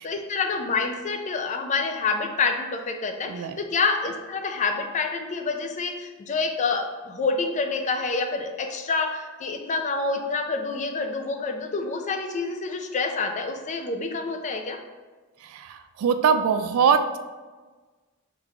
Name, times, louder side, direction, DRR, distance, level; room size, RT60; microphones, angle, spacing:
voice 1, 0.0-14.8, left 4 dB, 35° left, 5 dB, 0.4 m, -27 dB
voice 2, 3.3-3.6 15.4-17.2, right 6 dB, 70° right, 9 dB, 0.3 m, -23 dB
3.7 x 3.4 x 3.0 m, 1.3 s
head